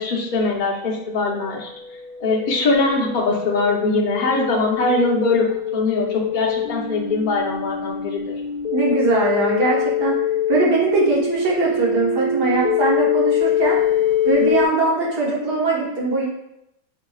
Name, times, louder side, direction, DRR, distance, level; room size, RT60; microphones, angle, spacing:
voice 1, 0.0-1.7 2.2-8.3, left 3 dB, 45° left, -1 dB, 0.7 m, -22 dB
sound 1, 1.4-14.7, left 7 dB, 70° left, 1.1 m, -24 dB
voice 2, 8.7-10.2 10.5-13.8 14.3-16.3, right 3 dB, 90° right, -5 dB, 1.9 m, -21 dB
5.4 x 3.7 x 2.3 m, 0.83 s
omnidirectional pair, 1.7 m